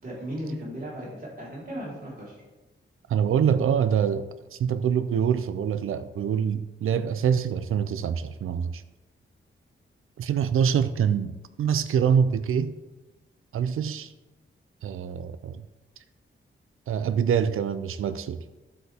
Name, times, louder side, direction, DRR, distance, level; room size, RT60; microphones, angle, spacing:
voice 1, 0.0-2.4, equal, 45° right, 3.7 m, -36 dB
voice 2, 3.1-8.8 10.2-12.7 13.5-14.1 14.8-15.6 16.9-18.4, right 7 dB, 85° right, 0.5 m, -25 dB
12.0 x 8.1 x 3.5 m
wide cardioid pair, 145°, 21 cm